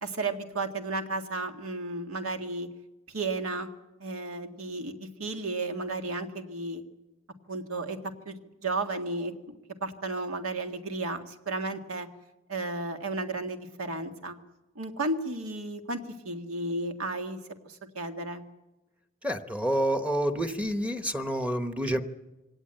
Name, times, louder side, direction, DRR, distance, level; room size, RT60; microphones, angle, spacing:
voice 1, 0.0-2.7 3.1-3.7 4.0-6.8 7.5-8.0 8.3-8.4 8.6-9.3 9.8-12.1 12.5-14.4 14.8-17.4 17.7-18.4, right 2 dB, 80° right, 5 dB, 1.8 m, -33 dB
voice 2, 19.2-22.0, right 1 dB, 5° right, 8 dB, 1.0 m, -28 dB
23.0 x 18.0 x 8.9 m, 1.1 s
head